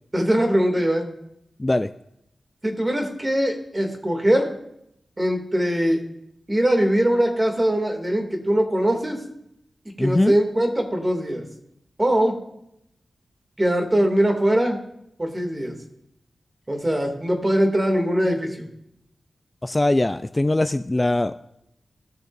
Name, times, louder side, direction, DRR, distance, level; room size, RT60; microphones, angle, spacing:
voice 1, 0.1-1.1 2.6-4.5 5.2-6.0 6.5-9.2 10.0-11.4 12.0-12.4 13.6-14.8 15.2-15.7 16.7-18.7, equal, 25° right, 2 dB, 2.6 m, -21 dB
voice 2, 10.0-10.3 19.6-21.4, left 2 dB, 25° left, 11 dB, 0.4 m, -21 dB
18.5 x 6.6 x 2.7 m, 0.78 s
cardioid pair, 45°, 0 cm